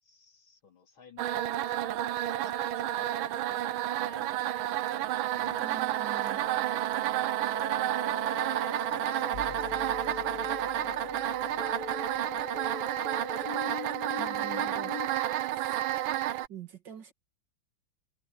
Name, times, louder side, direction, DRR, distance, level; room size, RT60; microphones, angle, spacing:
voice 1, 0.0-4.7 5.0-5.9 6.4-6.6 8.1-12.0 12.3-13.1, left 6 dB, 85° left, 4.3 m, -56 dB
sound 1, 1.2-16.5, right 13 dB, 90° right, 1.6 m, -31 dB
voice 2, 5.6-6.4 14.1-15.0 15.6-15.8 16.5-17.1, right 8 dB, 65° right, 2.5 m, -45 dB
sound 2, 7.5-15.1, left 8 dB, 55° left, 1.3 m, -42 dB
sound 3, 9.3-13.2, left 4 dB, 40° left, 1.9 m, -50 dB
omnidirectional pair, 2.2 m